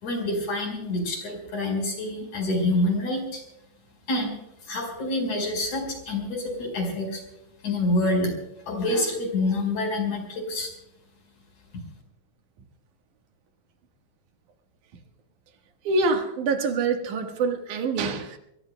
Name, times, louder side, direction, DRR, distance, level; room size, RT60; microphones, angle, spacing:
voice 1, 0.0-3.4 4.1-4.3 4.6-7.2 7.6-8.3 8.7-10.7, left 2 dB, 65° left, 3 dB, 6.2 m, -27 dB
voice 2, 15.8-18.4, right 3 dB, 75° right, 5 dB, 3.0 m, -25 dB
25.5 x 22.0 x 2.2 m, 0.83 s
omnidirectional pair, 3.5 m